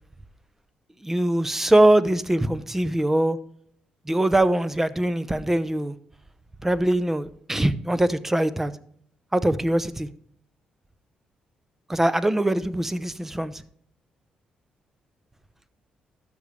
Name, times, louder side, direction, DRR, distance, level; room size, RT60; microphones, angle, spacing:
voice 1, 1.0-3.4 4.1-6.0 6.6-8.7 9.3-10.1 11.9-13.6, right 1 dB, 10° right, 0.7 m, -22 dB
12.5 x 6.8 x 3.3 m
cardioid pair, 85°, 3 cm